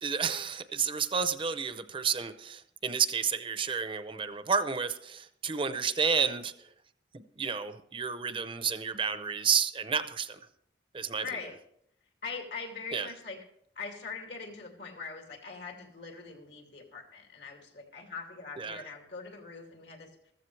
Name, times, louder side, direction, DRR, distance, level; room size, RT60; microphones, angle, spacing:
voice 1, 0.0-6.5 7.1-10.4 10.9-11.2 12.9-13.1 18.6-18.8, right 6 dB, 30° right, 11 dB, 0.6 m, -31 dB
voice 2, 11.2-11.6 12.2-13.4 13.7-20.3, left 4 dB, 75° left, 2 dB, 2.6 m, -42 dB
14.5 x 14.5 x 3.3 m, 0.70 s
head